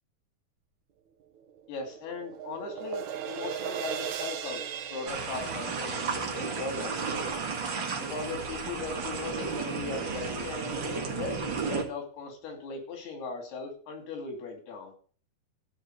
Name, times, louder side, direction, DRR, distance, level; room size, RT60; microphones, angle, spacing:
sound 1, 1.4-7.7, right 9 dB, 65° right, 2.2 m, -38 dB
voice 1, 1.7-4.6 4.9-7.3 8.0-14.9, left 4 dB, 90° left, 4 dB, 4.8 m, -38 dB
sound 2, 5.1-11.8, right 5 dB, 40° right, 1.7 m, -33 dB
14.5 x 5.4 x 7.8 m, 0.42 s
omnidirectional pair, 4.4 m